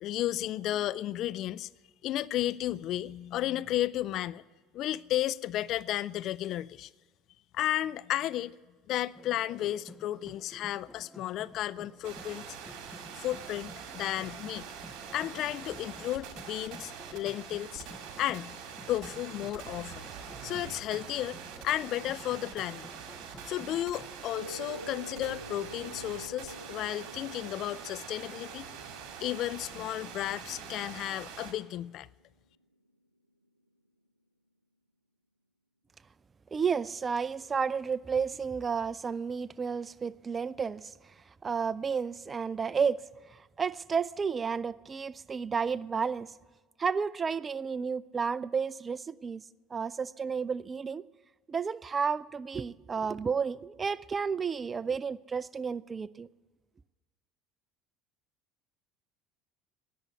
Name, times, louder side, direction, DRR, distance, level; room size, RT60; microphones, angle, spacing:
voice 1, 0.0-1.7 2.0-4.4 4.7-6.9 7.5-8.5 8.9-12.4 13.1-14.6 15.1-17.9 18.2-18.6 18.9-20.0 20.4-21.4 21.6-22.9 23.5-28.7 29.2-32.1, left 13 dB, 50° left, 0.3 m, -33 dB
sound 1, 9.2-24.2, left 1 dB, 10° left, 0.6 m, -52 dB
sound 2, 12.0-31.5, right 7 dB, 50° right, 2.1 m, -44 dB
sound 3, 24.3-31.5, right 1 dB, 90° right, 0.4 m, -48 dB
voice 2, 36.5-41.1 41.4-43.0 43.3-46.3 46.8-49.4 49.7-51.0 51.5-56.3, right 6 dB, 25° right, 0.4 m, -32 dB
19.0 x 6.9 x 8.4 m
figure-of-eight pair, 65°, 0 cm